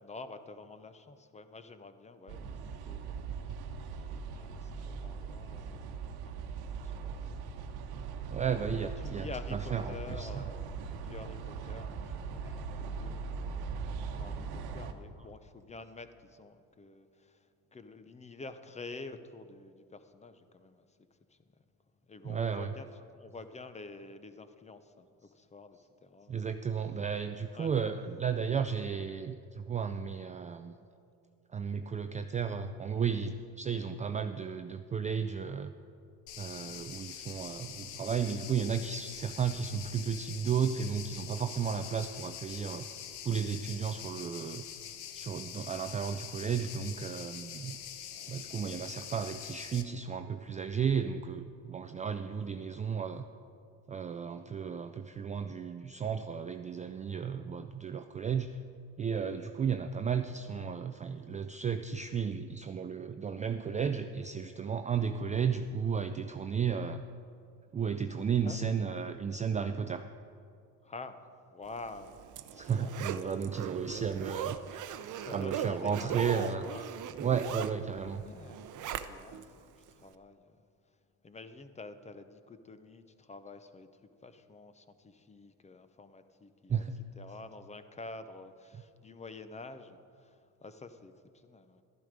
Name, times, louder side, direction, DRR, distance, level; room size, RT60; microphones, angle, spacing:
voice 1, 0.0-3.5 3.8-6.3 6.7-7.4 7.8-8.0 9.0-13.6 14.2-21.4 22.1-22.9 23.1-26.5 27.5-27.7 36.6-36.9 48.1-48.4 57.1-57.4 68.4-68.7 70.8-71.2 71.5-72.2 72.5-73.0 75.2-76.8 78.2-78.7 78.9-80.6 81.2-86.8 87.2-91.8, left 3 dB, 15° left, 10 dB, 0.7 m, -48 dB
sound 1, 2.3-14.9, right 5 dB, 75° right, 1.1 m, -40 dB
voice 2, 8.3-10.4 22.2-22.7 26.3-30.7 31.5-35.7 36.4-42.9 43.2-44.8 45.1-47.8 48.3-53.3 53.9-58.6 59.0-67.0 67.7-70.1 72.5-74.6 75.3-76.6 77.2-78.2 86.7-86.9, right 7 dB, 20° right, 8 dB, 0.3 m, -33 dB
sound 2, 36.3-49.8, left 9 dB, 80° left, 1.1 m, -45 dB
Zipper (clothing), 71.9-79.5 79.9-80.0, right 9 dB, 50° right, 0.7 m, -39 dB
12.5 x 11.0 x 5.1 m, 2.5 s
supercardioid pair, 100°, 39 cm